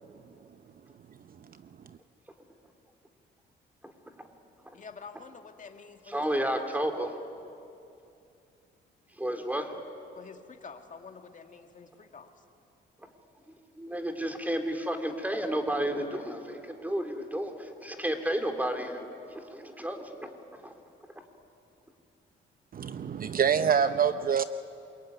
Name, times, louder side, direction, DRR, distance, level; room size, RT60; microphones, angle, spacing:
voice 1, 4.7-6.7 10.1-12.4, left 5 dB, 40° left, 5 dB, 2.1 m, -48 dB
voice 2, 6.1-7.1 9.2-9.8 13.8-20.7 23.8-23.9, right 1 dB, 10° right, 5 dB, 3.1 m, -32 dB
voice 3, 22.7-24.4, right 7 dB, 45° right, 11 dB, 0.8 m, -26 dB
27.5 x 22.5 x 9.4 m, 2.6 s
cardioid pair, 90°, 20 cm